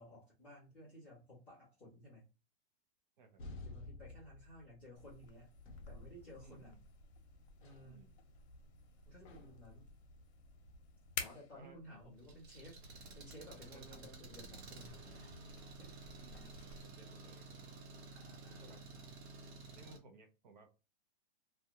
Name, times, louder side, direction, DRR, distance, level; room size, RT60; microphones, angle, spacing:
voice 1, 0.0-2.2 3.6-5.5 5.9-6.8 7.6-8.1 9.0-9.9 11.2-15.4 15.8-15.9 16.3-16.5 18.1-19.1, equal, 5° left, -12 dB, 0.4 m, -56 dB
sound 1, 3.4-5.0 5.7-6.9 7.6-8.0 9.3-9.7, left 3 dB, 50° left, 0.7 m, -52 dB
sound 2, 5.0-16.8, left 5 dB, 85° left, 0.7 m, -52 dB
voice 2, 6.4-6.8 7.8-8.1 11.5-11.8 13.5-14.4 16.2-17.8 18.6-18.8 19.7-20.8, right 4 dB, 45° right, 5 dB, 0.6 m, -60 dB
Engine, 12.2-20.0, right 3 dB, 75° right, 1.0 m, -53 dB
2.3 x 2.1 x 2.7 m, 0.29 s
supercardioid pair, 180°, 32 cm